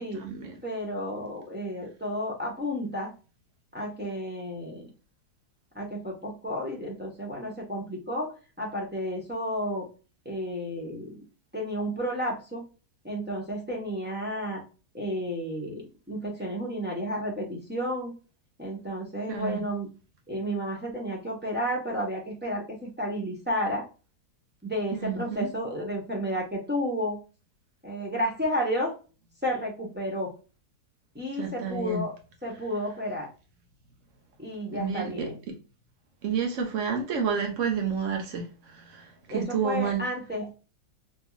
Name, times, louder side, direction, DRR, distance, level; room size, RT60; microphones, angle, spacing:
voice 1, 0.0-0.6 19.3-19.6 24.9-25.5 31.4-32.0 34.7-35.3 36.2-38.5 38.7-40.0, right 6 dB, 55° right, 1.1 m, -30 dB
voice 2, 0.6-3.1 3.7-4.9 5.7-9.9 10.2-11.2 11.5-12.6 13.0-14.6 14.9-18.1 18.6-19.9 20.3-23.8 24.6-27.2 27.8-28.9 29.4-30.3 31.1-33.3 34.4-35.4 39.3-40.5, equal, 10° right, 0.7 m, -32 dB
3.3 x 2.8 x 2.3 m
omnidirectional pair, 1.8 m